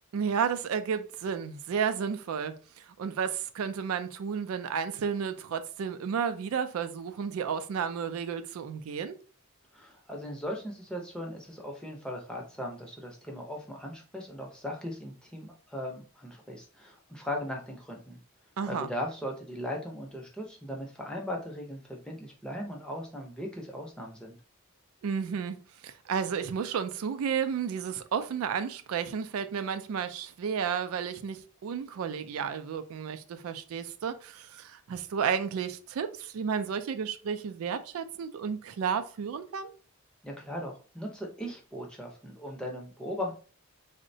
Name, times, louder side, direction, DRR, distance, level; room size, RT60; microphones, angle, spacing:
voice 1, 0.1-2.5 2.8-9.2 18.6-18.9 25.0-25.6 25.8-39.7, right 7 dB, 75° right, 0.3 m, -32 dB
voice 2, 9.7-18.2 18.7-24.4 40.2-43.4, left 1 dB, 5° left, 0.5 m, -38 dB
3.7 x 2.1 x 2.6 m
head